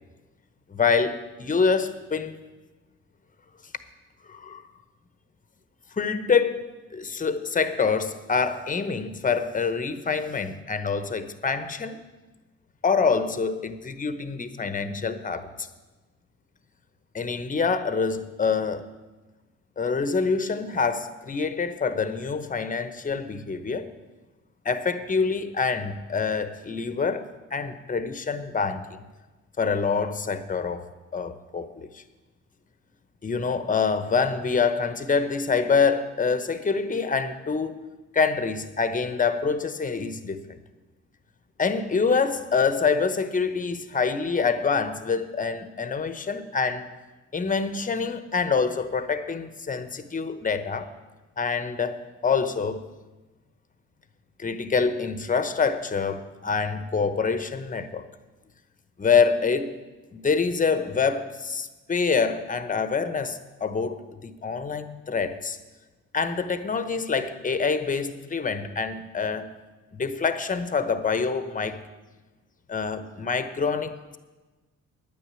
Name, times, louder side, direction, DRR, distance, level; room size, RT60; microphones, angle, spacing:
voice 1, 0.7-2.3 4.2-4.6 6.0-6.6 6.9-12.0 12.8-15.7 17.1-18.9 19.8-23.9 24.6-29.0 29.6-32.0 33.2-40.5 41.6-46.9 47.3-50.9 51.4-52.9 54.4-58.1 59.0-59.8 60.1-65.6 66.1-69.5 69.9-71.8 72.7-74.2, left 5 dB, 25° left, 1.0 m, -26 dB
10.5 x 9.2 x 8.3 m
cardioid pair, 90°, 30 cm